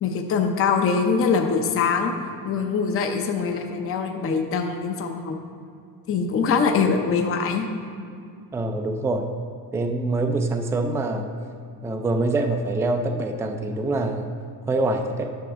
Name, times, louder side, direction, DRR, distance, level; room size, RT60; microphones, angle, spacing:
voice 1, 0.0-2.1 2.4-5.3 6.1-7.7, left 5 dB, 35° left, 4 dB, 0.7 m, -23 dB
voice 2, 8.5-9.3 9.7-11.3 11.8-14.3 14.7-15.3, right 2 dB, 10° right, 4 dB, 0.3 m, -25 dB
10.5 x 5.9 x 3.6 m, 2.4 s
cardioid pair, 135°, 38 cm